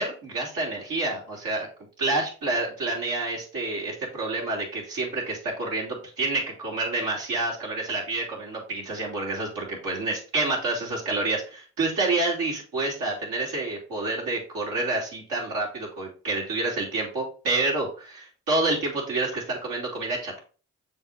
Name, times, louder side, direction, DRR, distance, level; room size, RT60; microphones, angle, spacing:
voice 1, 0.0-1.7 2.0-20.4, right 2 dB, 85° right, -2 dB, 2.6 m, -28 dB
6.9 x 3.7 x 4.0 m, 0.36 s
supercardioid pair, 50°, 33 cm